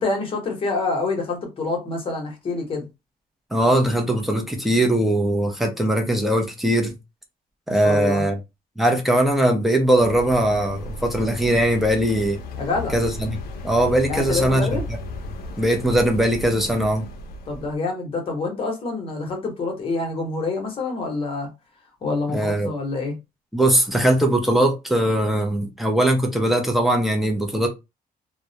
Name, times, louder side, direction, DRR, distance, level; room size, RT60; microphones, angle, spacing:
voice 1, 0.0-2.9 7.8-8.2 12.6-12.9 14.1-14.8 17.5-21.5 22.0-23.1, left 3 dB, 35° left, 0.8 m, -26 dB
voice 2, 3.5-6.9 7.7-8.4 8.8-12.4 12.9-14.8 15.6-17.1 22.3-22.7 23.5-27.7, right 1 dB, ahead, 0.5 m, -20 dB
sound 1, 10.0-17.7, left 2 dB, 80° left, 0.4 m, -34 dB
2.3 x 2.0 x 2.7 m
cardioid pair, 175°, 16 cm